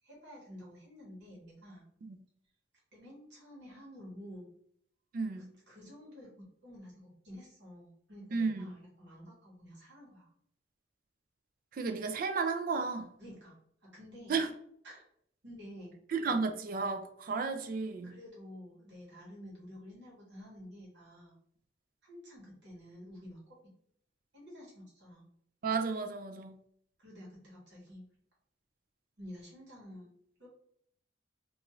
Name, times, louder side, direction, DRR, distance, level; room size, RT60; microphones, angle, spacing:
voice 1, 0.0-1.8 2.9-4.5 5.4-10.3 13.2-14.3 14.8-15.0 15.4-15.9 18.0-21.3 22.0-23.6 24.3-25.3 27.0-28.0 29.2-30.1 30.4-30.5, equal, 65° right, -5 dB, 1.2 m, -50 dB
voice 2, 5.1-5.5 8.3-8.6 11.7-13.1 14.3-14.5 16.1-18.1 25.6-26.5, right 4 dB, 50° right, 7 dB, 0.3 m, -33 dB
2.5 x 2.4 x 3.0 m, 0.67 s
head